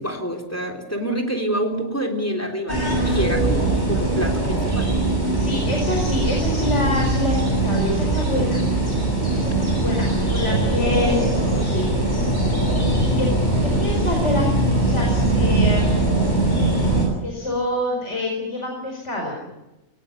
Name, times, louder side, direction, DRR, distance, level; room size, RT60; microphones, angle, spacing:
voice 1, 0.0-4.9, equal, 10° left, 4 dB, 3.7 m, -27 dB
sound 1, 2.7-17.1, right 2 dB, 35° left, 8.1 m, -21 dB
voice 2, 5.3-8.6 9.3-11.8 12.8-13.3 13.6-16.0 17.2-19.4, left 1 dB, 60° left, -1 dB, 5.3 m, -27 dB
20.0 x 19.5 x 9.6 m, 1.0 s
omnidirectional pair, 1.4 m